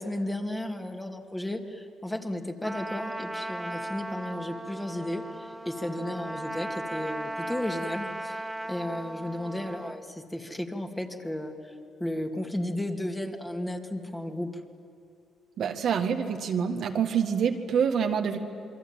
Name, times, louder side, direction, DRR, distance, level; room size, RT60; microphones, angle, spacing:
voice 1, 0.0-11.7 12.0-14.5, left 1 dB, 10° left, 3 dB, 2.5 m, -34 dB
Trumpet, 2.6-10.0, right 1 dB, 10° right, 1.0 m, -37 dB
voice 2, 15.6-18.4, right 7 dB, 65° right, 4 dB, 1.9 m, -26 dB
27.5 x 23.0 x 9.1 m, 2.4 s
cardioid pair, 90°, 0 cm